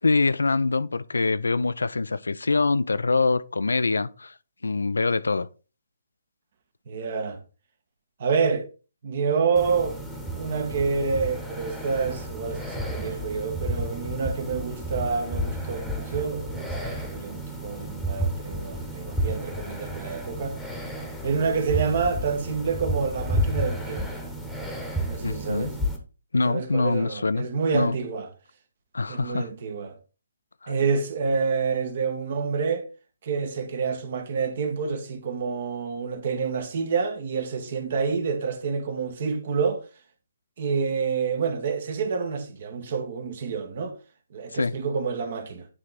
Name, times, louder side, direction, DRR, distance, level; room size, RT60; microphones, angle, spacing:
voice 1, 0.0-4.3 4.6-5.5 25.2-25.7 26.3-27.5 27.7-28.0 28.9-29.5 30.6-30.7 44.5-44.7, left 3 dB, 85° left, 0.4 m, -24 dB
voice 2, 6.9-7.4 8.2-8.7 9.0-10.0 10.3-20.6 21.2-24.2 25.0-25.7 26.4-28.3 29.1-30.0 30.7-32.8 33.2-39.8 40.6-43.9 44.3-45.7, right 5 dB, 50° right, 1.3 m, -28 dB
sound 1, 9.6-26.0, equal, ahead, 1.1 m, -31 dB
9.5 x 3.2 x 4.0 m
hypercardioid pair, 145°, 0 cm